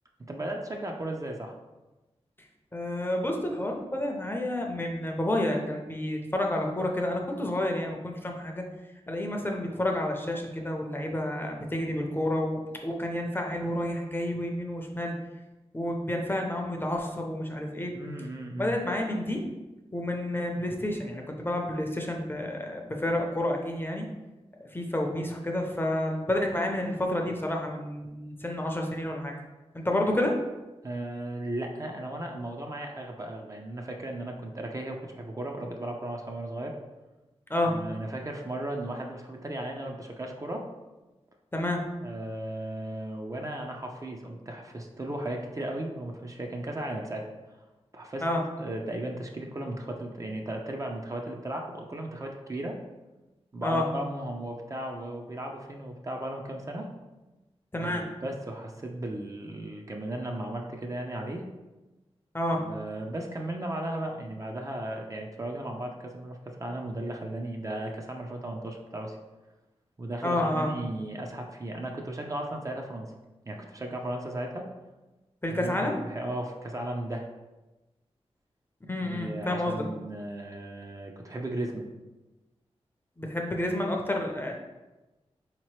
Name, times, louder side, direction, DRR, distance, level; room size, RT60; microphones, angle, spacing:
voice 1, 0.3-1.6 17.9-18.7 30.8-36.7 37.7-40.7 42.0-47.3 47.9-48.2 48.6-52.8 53.5-56.9 57.8-61.4 62.6-69.2 70.0-73.1 73.5-74.7 75.5-77.3 79.0-81.9, right 1 dB, 30° right, 1 dB, 0.5 m, -36 dB
voice 2, 2.7-8.6 9.1-15.1 15.7-17.9 18.6-19.4 19.9-24.1 24.6-29.3 29.7-30.4 37.5-37.8 41.5-41.9 48.2-48.4 53.6-53.8 57.7-58.0 62.3-62.6 70.2-70.7 75.4-76.0 78.9-79.8 83.2-84.5, left 1 dB, 20° left, 1 dB, 0.6 m, -30 dB
3.9 x 2.9 x 3.1 m, 1.1 s
wide cardioid pair, 75°, 11 cm